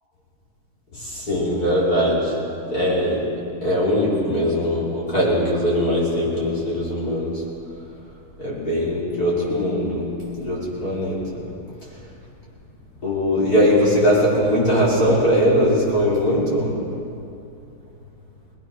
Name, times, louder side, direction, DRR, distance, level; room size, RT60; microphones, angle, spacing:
voice 1, 0.9-3.3 3.6-7.4 8.4-11.4 13.0-17.0, equal, 45° left, -7 dB, 6.0 m, -21 dB
23.5 x 19.5 x 6.3 m, 2.6 s
omnidirectional pair, 2.3 m